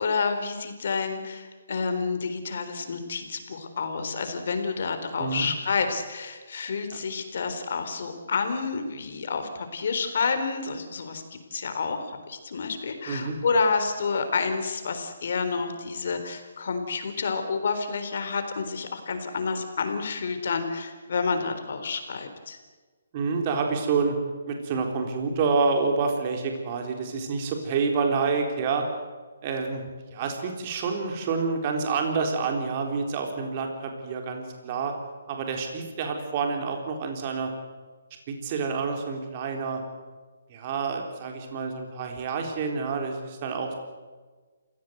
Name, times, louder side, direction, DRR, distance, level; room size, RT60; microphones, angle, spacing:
voice 1, 0.0-22.6, left 4 dB, 60° left, 7 dB, 4.0 m, -29 dB
voice 2, 5.2-5.5 6.9-7.0 13.1-13.4 23.1-24.2 24.5-28.9 29.4-29.8 30.1-34.9 35.3-37.5 38.3-39.8 40.5-43.7, right 4 dB, 35° right, 3 dB, 3.8 m, -28 dB
27.5 x 16.5 x 8.0 m, 1.4 s
hypercardioid pair, 160°, 0 cm